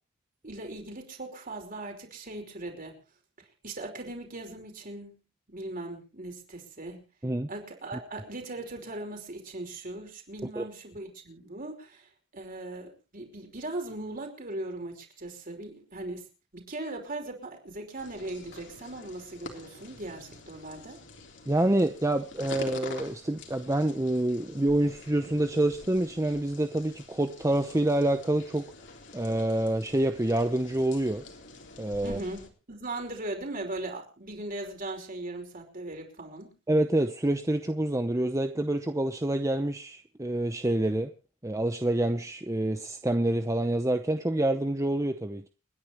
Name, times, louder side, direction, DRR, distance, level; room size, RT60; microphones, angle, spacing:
voice 1, 0.4-3.0 3.6-5.2 5.5-7.0 7.5-16.3 16.5-21.0 32.0-32.4 32.7-36.5, right 2 dB, 45° right, 5.2 m, -39 dB
sound 1, 18.0-32.5, left 2 dB, 60° left, 3.5 m, -47 dB
voice 2, 21.5-28.7 29.1-31.2 31.8-32.2 36.7-41.1 41.4-45.5, right 1 dB, 15° right, 0.7 m, -27 dB
29.5 x 10.5 x 3.0 m
head